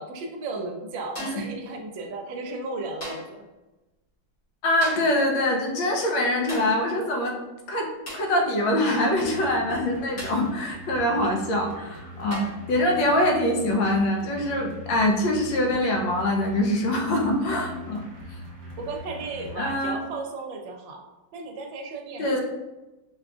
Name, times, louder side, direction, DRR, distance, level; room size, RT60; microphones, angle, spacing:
voice 1, 0.0-3.2 11.2-11.3 18.8-21.0 21.3-22.4, right 3 dB, 80° right, 2 dB, 1.2 m, -34 dB
sound 1, 1.2-1.6 3.0-3.4 4.8-5.2 6.5-6.8 8.1-8.4 10.2-10.5 11.6-11.7 12.3-12.7 13.9-14.1 15.7-15.9, equal, 40° left, 0.8 m, -38 dB
voice 2, 4.6-7.4 7.7-18.0 19.6-20.0 22.2-22.4, left 1 dB, 80° left, 0 dB, 1.4 m, -24 dB
sound 2, 9.1-19.8, equal, 50° right, 0.8 m, -42 dB
5.1 x 2.4 x 2.3 m, 1.1 s
omnidirectional pair, 2.1 m